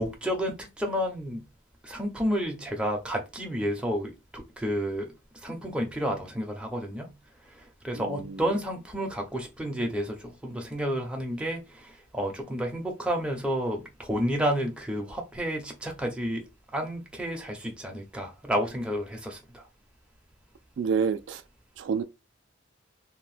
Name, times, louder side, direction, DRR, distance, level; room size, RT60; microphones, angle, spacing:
voice 1, 0.0-1.4 1.8-5.1 5.4-7.1 7.5-16.4 16.7-19.6, equal, 5° right, 0.5 m, -31 dB
voice 2, 7.9-8.5 20.8-21.4 21.8-22.0, right 6 dB, 65° right, 0.3 m, -29 dB
2.7 x 2.1 x 3.2 m
head